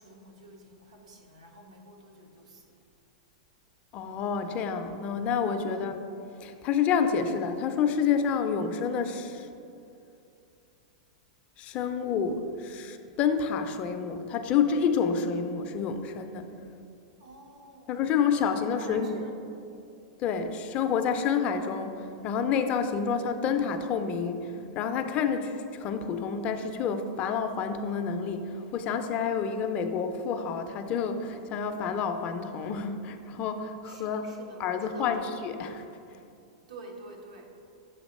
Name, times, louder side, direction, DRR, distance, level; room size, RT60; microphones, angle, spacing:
voice 1, 0.0-2.7 5.7-6.1 17.2-18.0 18.8-19.4 20.3-20.6 33.9-35.3 36.7-37.6, right 2 dB, 85° right, 0 dB, 1.0 m, -48 dB
voice 2, 3.9-6.0 6.4-9.5 11.6-16.5 17.9-19.3 20.2-34.2 34.6-35.8, left 6 dB, 35° left, 8 dB, 0.4 m, -29 dB
7.0 x 2.9 x 5.2 m, 2.6 s
hypercardioid pair, 130°, 4 cm